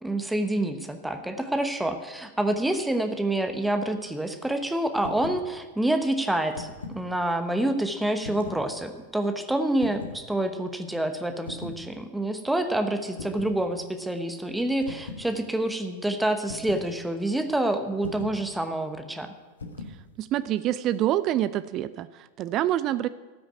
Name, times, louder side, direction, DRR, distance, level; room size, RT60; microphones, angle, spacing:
voice 1, 0.0-19.3, right 1 dB, 5° right, 6 dB, 1.0 m, -27 dB
sound 1, 5.0-5.4 6.3-7.0 8.2-8.7 9.8-10.2 11.5-11.8 13.2-13.6 14.8-15.3 16.5-16.9 18.0-18.4 19.6-20.0, left 3 dB, 70° left, 1.4 m, -39 dB
voice 2, 20.2-23.1, right 13 dB, 35° right, 15 dB, 0.4 m, -26 dB
13.5 x 6.4 x 9.4 m, 1.3 s
figure-of-eight pair, 90°, 0 cm